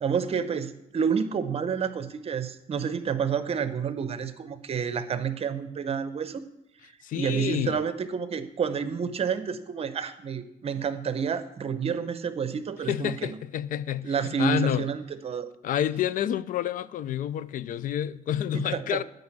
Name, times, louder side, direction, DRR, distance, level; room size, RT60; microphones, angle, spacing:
voice 1, 0.0-6.4 6.8-13.4 14.0-15.5 18.5-19.0, right 6 dB, 40° right, 0.8 m, -29 dB
voice 2, 7.0-7.8 12.9-14.9 15.6-19.0, left 10 dB, 65° left, 0.4 m, -29 dB
9.5 x 5.4 x 7.2 m
cardioid pair, 120°, 15 cm